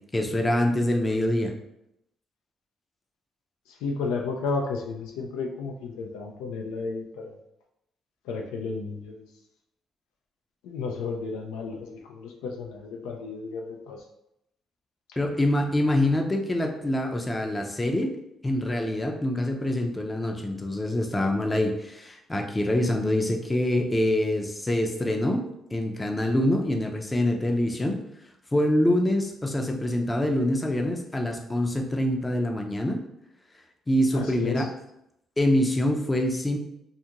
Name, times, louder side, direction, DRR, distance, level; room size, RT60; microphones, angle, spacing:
voice 1, 0.1-1.5 15.2-18.2 18.4-25.4 25.7-28.0 28.5-33.0 33.9-34.7 35.4-36.6, left 1 dB, 20° left, 3 dB, 0.5 m, -25 dB
voice 2, 3.7-7.3 8.3-9.3 10.6-14.0 34.1-34.7, left 4 dB, 85° left, 1 dB, 0.3 m, -33 dB
2.5 x 2.4 x 2.9 m, 0.81 s
supercardioid pair, 60°, 0 cm